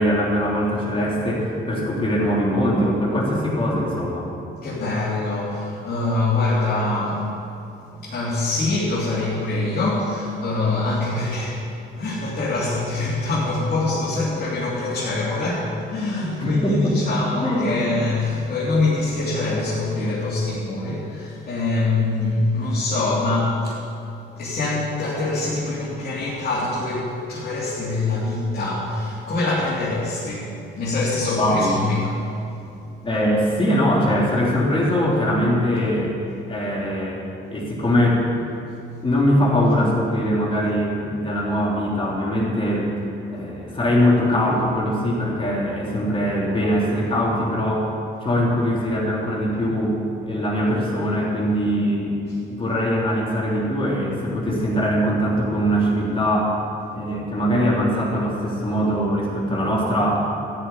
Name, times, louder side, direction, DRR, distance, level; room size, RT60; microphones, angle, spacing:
voice 1, 0.0-4.3 16.4-17.0 17.4-17.8 31.3-31.8 33.0-36.2 36.5-37.2 37.5-38.2 39.0-42.9 43.3-47.9 48.2-50.0 50.2-52.1 52.5-56.6 56.9-60.3, equal, 25° left, -4 dB, 3.4 m, -21 dB
voice 2, 4.6-7.3 7.9-11.6 12.0-23.8 24.4-32.3, left 2 dB, 50° left, -8 dB, 3.6 m, -24 dB
14.0 x 6.6 x 9.8 m, 2.6 s
cardioid pair, 90°, 20 cm